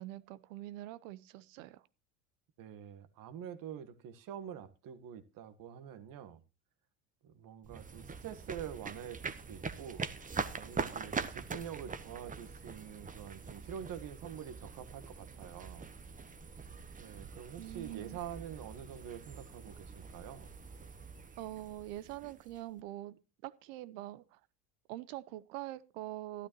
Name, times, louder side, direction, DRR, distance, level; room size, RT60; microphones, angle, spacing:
voice 1, 0.0-1.8 17.6-18.2 21.4-23.2 23.4-24.4 24.9-26.5, right 15 dB, 70° right, 0.9 m, -44 dB
voice 2, 2.6-6.4 7.2-10.1 10.5-15.9 17.0-20.5, right 9 dB, 55° right, 1.5 m, -46 dB
sound 1, 7.6-22.8, right 5 dB, 20° right, 1.1 m, -43 dB
13.0 x 12.0 x 3.1 m
hypercardioid pair, 75°, 41 cm